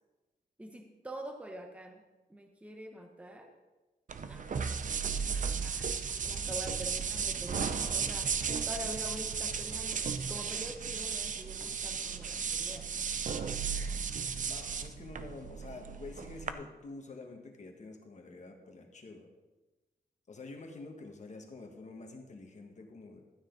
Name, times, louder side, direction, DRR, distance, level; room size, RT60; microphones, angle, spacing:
voice 1, 0.6-2.0 2.3-3.5 4.2-5.0 5.6-13.3, equal, 10° right, 3 dB, 0.9 m, -46 dB
sound 1, 4.1-16.5, right 6 dB, 50° right, 0.6 m, -35 dB
voice 2, 14.4-19.3 20.3-23.2, left 3 dB, 45° left, 3 dB, 1.6 m, -48 dB
12.5 x 9.3 x 3.9 m, 1.1 s
wide cardioid pair, 145°, 17 cm